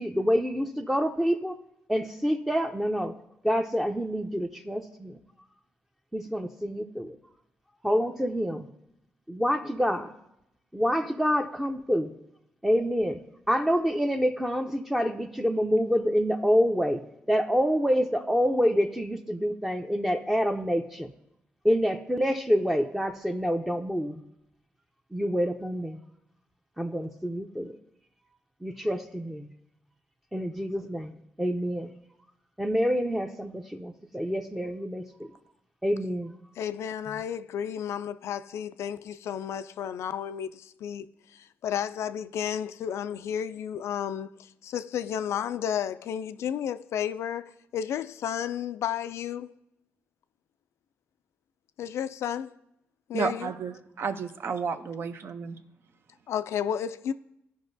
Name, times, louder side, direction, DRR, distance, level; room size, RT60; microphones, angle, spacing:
voice 1, 0.0-1.6 1.9-3.1 3.4-5.2 6.1-7.2 7.8-8.7 9.3-10.1 10.7-12.1 12.6-13.2 13.5-17.0 17.3-21.1 21.6-24.2 25.1-26.0 26.8-27.8 28.6-29.5 30.3-31.9 32.6-35.3 35.8-36.3, equal, 5° right, 0.6 m, -27 dB
voice 2, 36.6-41.1 41.3-44.3 44.6-49.5 51.8-52.5 53.1-53.5 56.3-57.1, left 9 dB, 80° left, 0.3 m, -32 dB
voice 3, 53.1-55.6, right 5 dB, 60° right, 0.7 m, -32 dB
15.0 x 5.3 x 2.6 m
cardioid pair, 85°, 5 cm